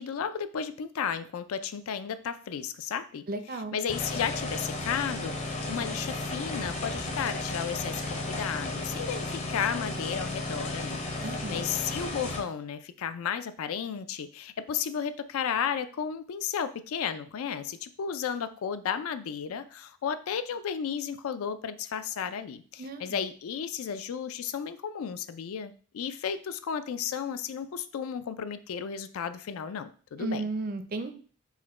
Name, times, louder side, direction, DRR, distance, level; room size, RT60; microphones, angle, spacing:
voice 1, 0.0-3.2 3.5-30.5, left 7 dB, 75° left, 12 dB, 0.3 m, -33 dB
voice 2, 3.3-3.8 11.2-11.6 22.8-23.2 30.2-31.1, right 2 dB, 40° right, 8 dB, 0.4 m, -34 dB
sound 1, 3.9-12.4, left 2 dB, 30° left, 0.7 m, -34 dB
4.7 x 2.2 x 4.2 m, 0.42 s
head